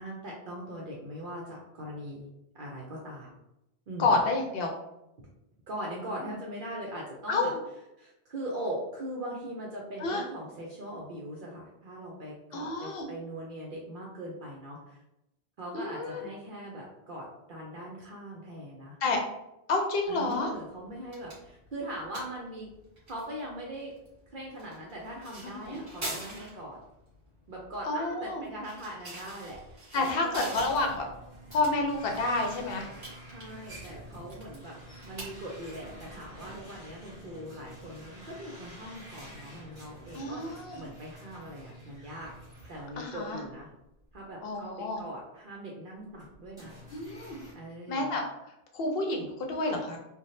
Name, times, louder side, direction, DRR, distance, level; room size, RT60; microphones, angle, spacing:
voice 1, 0.0-2.3 2.5-3.4 3.9-4.1 5.7-7.5 8.0-15.0 15.6-19.0 20.1-22.7 23.1-23.9 24.3-26.8 27.5-30.6 33.2-42.3 42.7-43.7 44.1-46.7 47.5-48.1, right 1 dB, 60° right, -3 dB, 0.7 m, -41 dB
voice 2, 4.0-4.7 6.2-6.3 7.3-7.6 10.0-10.2 12.5-13.1 15.7-16.3 19.0-19.2 19.7-20.5 25.6-25.8 27.9-28.4 29.9-31.1 31.5-32.9 40.1-40.8 43.0-43.4 44.4-45.0 46.9-47.4 47.9-50.0, left 2 dB, 65° left, 2 dB, 0.8 m, -29 dB
sound 1, 20.1-38.4, right 1 dB, 45° right, 1.4 m, -47 dB
sound 2, 30.5-43.6 44.0-44.2 44.9-45.0 46.1-47.5, right 1 dB, 5° right, 1.1 m, -49 dB
3.3 x 2.2 x 2.6 m, 0.88 s
omnidirectional pair, 1.1 m